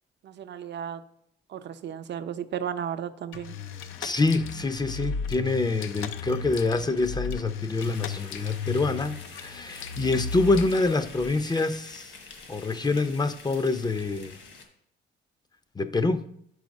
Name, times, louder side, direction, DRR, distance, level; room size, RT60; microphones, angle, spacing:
voice 1, 0.2-1.0 1.5-3.6, right 9 dB, 60° right, 0.6 m, -34 dB
sound 1, 3.3-11.3, left 5 dB, 90° left, 0.5 m, -35 dB
voice 2, 4.0-12.1 12.5-14.4 15.8-16.3, left 3 dB, 20° left, 0.5 m, -26 dB
sound 2, 7.8-14.7, left 4 dB, 65° left, 1.5 m, -47 dB
6.2 x 4.8 x 5.2 m
cardioid pair, 90°, 20 cm